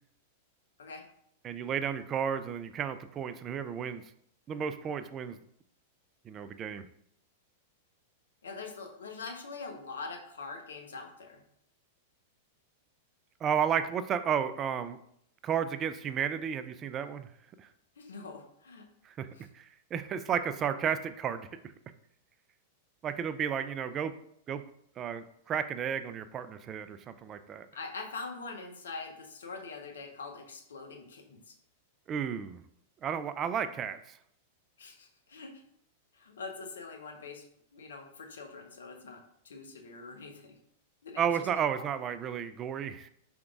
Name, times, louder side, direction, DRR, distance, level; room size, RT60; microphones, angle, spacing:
voice 1, 1.4-4.0 4.5-5.4 6.3-6.9 13.4-15.0 15.4-17.3 17.6-17.7 19.0-19.3 19.5-21.5 23.0-24.1 24.5-24.6 25.0-27.7 32.1-32.6 33.0-34.2 41.2-43.1, right 8 dB, 30° right, 11 dB, 0.3 m, -32 dB
voice 2, 8.4-11.4 18.0-18.8 19.4-19.5 27.7-31.5 34.8-35.5 36.1-37.4 37.7-39.2 39.4-40.5 41.0-41.3 41.7-41.9, left 4 dB, 80° left, 4 dB, 0.8 m, -43 dB
4.8 x 3.5 x 2.4 m, 0.70 s
hypercardioid pair, 105°, 0 cm